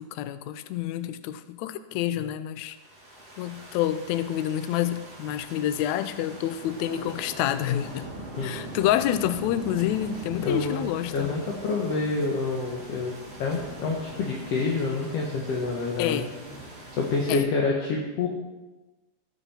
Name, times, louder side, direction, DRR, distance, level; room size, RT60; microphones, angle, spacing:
voice 1, 0.0-2.8 3.4-8.1 8.4-11.3 16.0-16.3 17.3-17.5, left 12 dB, 80° left, 12 dB, 1.7 m, -28 dB
sound 1, 2.7-17.4, right 2 dB, 50° right, 4.5 m, -42 dB
voice 2, 10.4-10.8 11.1-13.1 13.4-16.2 17.0-18.3, left 3 dB, 60° left, -1 dB, 2.0 m, -27 dB
18.0 x 6.9 x 4.3 m, 1.1 s
omnidirectional pair, 3.8 m